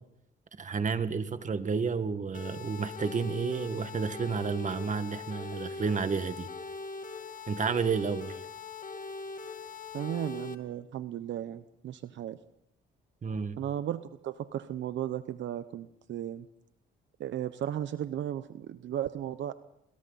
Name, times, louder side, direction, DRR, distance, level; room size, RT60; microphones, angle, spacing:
voice 1, 0.6-6.5 7.5-8.3 13.2-13.6, right 5 dB, 40° right, 10 dB, 1.8 m, -31 dB
sound 1, 2.3-10.5, left 4 dB, 40° left, 2.4 m, -41 dB
voice 2, 9.9-12.4 13.6-16.5 17.2-19.5, right 11 dB, 70° right, 12 dB, 0.9 m, -35 dB
29.0 x 22.5 x 4.2 m, 0.79 s
cardioid pair, 90°, 20 cm